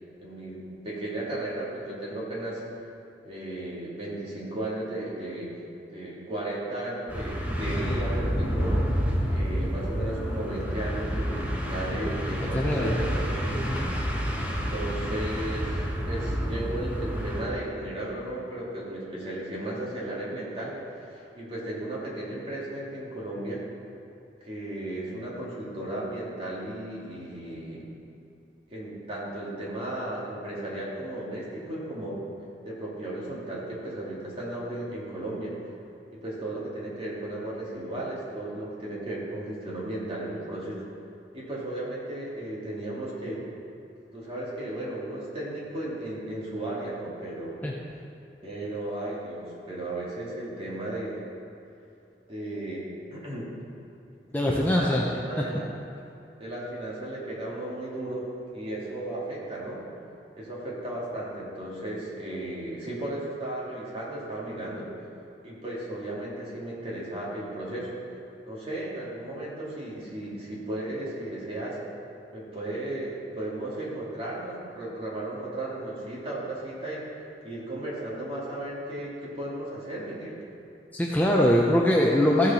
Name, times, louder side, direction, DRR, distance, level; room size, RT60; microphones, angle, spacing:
voice 1, 0.2-2.6 3.2-5.6 5.9-8.8 9.3-13.6 14.4-20.7 21.0-23.6 24.4-27.9 28.7-32.2 32.6-35.6 36.1-40.8 41.3-43.5 44.1-47.6 48.4-51.2 52.3-53.5 54.4-55.7 56.4-58.3 58.5-59.8 60.4-64.9 65.4-67.9 68.5-71.8 72.3-77.2 77.4-80.4, right 1 dB, 35° right, -6 dB, 2.6 m, -35 dB
sound 1, 7.1-17.4, equal, 10° right, 1.1 m, -29 dB
voice 2, 12.5-13.0 13.6-13.9 47.6-47.7 54.3-55.0 80.9-82.5, left 1 dB, 10° left, -3 dB, 0.7 m, -22 dB
15.0 x 6.5 x 4.3 m, 2.8 s
head